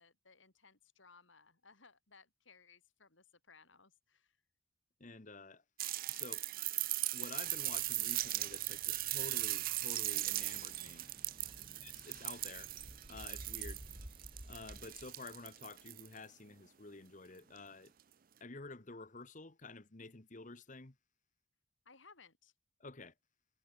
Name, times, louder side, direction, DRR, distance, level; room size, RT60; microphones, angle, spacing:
voice 1, 0.0-4.4 11.5-11.9 21.9-22.5, left 4 dB, 70° left, 4.1 m, -63 dB
voice 2, 5.0-5.6 6.1-6.4 7.1-11.1 11.8-12.7 13.1-13.8 14.5-17.9 18.4-20.9 22.8-23.1, left 3 dB, 40° left, 1.3 m, -50 dB
sound 1, 5.8-16.2 17.6-17.7, right 17 dB, 45° right, 0.5 m, -38 dB
sound 2, 7.4-15.8, right 1 dB, 25° right, 2.2 m, -55 dB
head